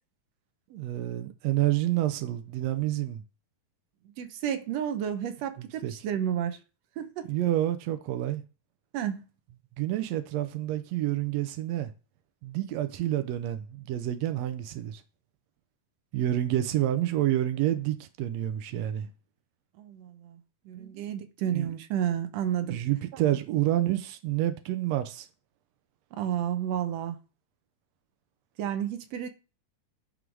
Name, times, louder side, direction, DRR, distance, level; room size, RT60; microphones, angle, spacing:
voice 1, 0.7-3.2 5.8-5.9 7.3-8.4 9.8-11.9 12.4-15.0 16.1-19.1 20.7-20.9 21.5-21.7 22.7-25.3, right 13 dB, 85° right, 1.5 m, -28 dB
voice 2, 4.2-6.6 7.0-7.3 8.9-9.2 19.8-22.8 26.2-27.2 28.6-29.3, right 9 dB, 70° right, 1.7 m, -31 dB
11.0 x 3.8 x 4.7 m
omnidirectional pair, 3.9 m